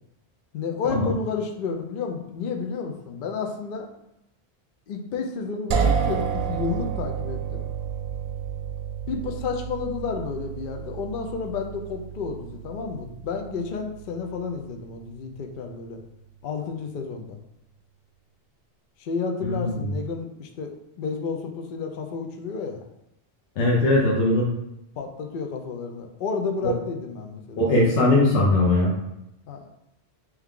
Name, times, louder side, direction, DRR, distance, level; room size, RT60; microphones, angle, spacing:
voice 1, 0.5-3.9 4.9-7.6 9.1-16.0 16.4-17.4 19.0-20.7 21.0-22.8 25.0-27.7 29.5-29.6, left 5 dB, 60° left, 4 dB, 0.6 m, -31 dB
sound 1, 5.7-15.5, right 7 dB, 65° right, 0.7 m, -30 dB
voice 2, 19.4-19.7 23.6-24.5 26.6-26.7 27.6-28.9, left 2 dB, 90° left, -3 dB, 1.1 m, -20 dB
3.5 x 3.0 x 3.6 m, 0.86 s
omnidirectional pair, 1.2 m